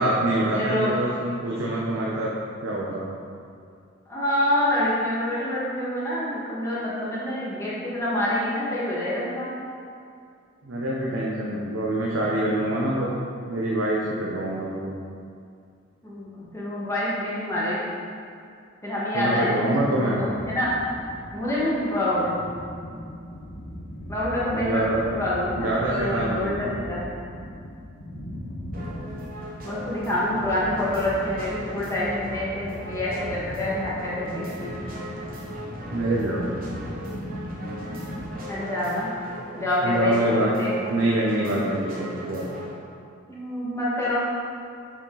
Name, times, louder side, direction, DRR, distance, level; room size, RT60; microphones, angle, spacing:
voice 1, 0.0-2.3 2.6-3.1 10.6-13.1 13.4-14.9 19.1-20.3 24.5-25.0 25.6-26.8 35.9-36.8 39.8-40.5 40.9-42.4, right 1 dB, 90° right, -4 dB, 0.9 m, -25 dB
voice 2, 0.5-0.9 4.1-9.6 16.0-17.9 18.8-20.7 21.3-22.4 24.1-24.8 25.1-27.0 29.6-34.7 38.5-39.1 39.5-40.9 43.3-44.3, left 1 dB, 15° left, -8 dB, 1.7 m, -27 dB
sound 1, 20.2-38.3, equal, 80° left, 1.1 m, -38 dB
sound 2, 28.7-42.7, equal, 50° right, 1.1 m, -39 dB
7.1 x 5.1 x 4.0 m, 2.4 s
head